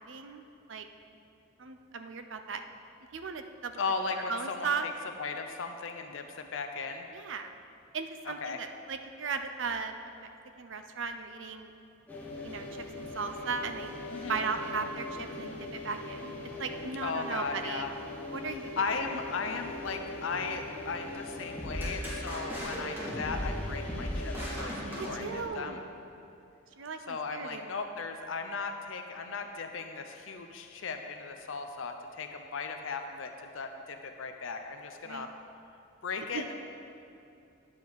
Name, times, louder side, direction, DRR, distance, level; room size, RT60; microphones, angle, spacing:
voice 1, 0.1-0.4 0.7-0.8 1.6-2.6 3.1-3.7 4.3-4.9 7.1-7.5 7.9-10.3 10.6-11.7 12.4-13.9 14.3-15.5 15.8-17.9 18.3-18.9 24.8-25.8 26.8-27.8 35.1-35.3 36.3-36.4, right 5 dB, 70° right, 7 dB, 0.6 m, -37 dB
voice 2, 3.8-4.9 5.2-7.1 8.2-8.6 14.1-14.4 17.0-17.9 18.8-25.8 27.1-35.3 36.0-36.5, left 4 dB, 75° left, 5 dB, 0.6 m, -37 dB
sound 1, 12.1-25.5, left 2 dB, 10° left, 1.2 m, -41 dB
sound 2, 21.6-25.7, equal, 10° right, 2.1 m, -37 dB
10.5 x 7.3 x 4.8 m, 2.7 s
head